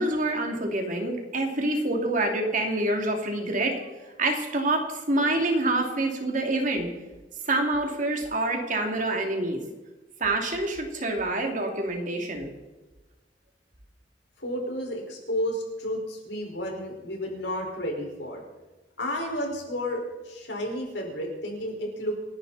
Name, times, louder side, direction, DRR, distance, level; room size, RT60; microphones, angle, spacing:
voice 1, 0.0-3.8 4.2-6.9 7.4-9.6 10.2-12.5, right 2 dB, 45° right, 2 dB, 2.8 m, -26 dB
voice 2, 14.4-18.4 19.0-22.2, equal, 75° left, 0 dB, 5.1 m, -32 dB
28.5 x 11.0 x 4.2 m, 1.2 s
head